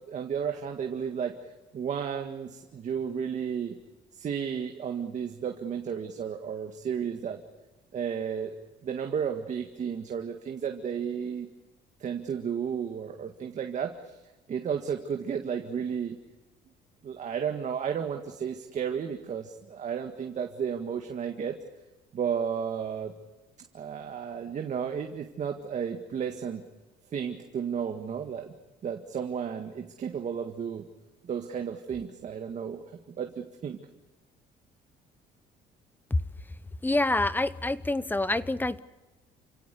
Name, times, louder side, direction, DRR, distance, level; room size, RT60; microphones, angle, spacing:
voice 1, 0.0-1.4 1.7-3.8 4.1-7.4 7.9-8.6 8.8-11.5 12.0-14.2 14.5-16.2 17.0-21.6 22.1-23.1 23.7-26.6 27.1-28.5 28.8-30.9 31.2-33.8, right 7 dB, 45° right, 4 dB, 1.8 m, -33 dB
voice 2, 36.8-38.8, left 2 dB, 10° left, 16 dB, 0.9 m, -26 dB
29.0 x 17.0 x 8.4 m, 1.1 s
cardioid pair, 110°, 17 cm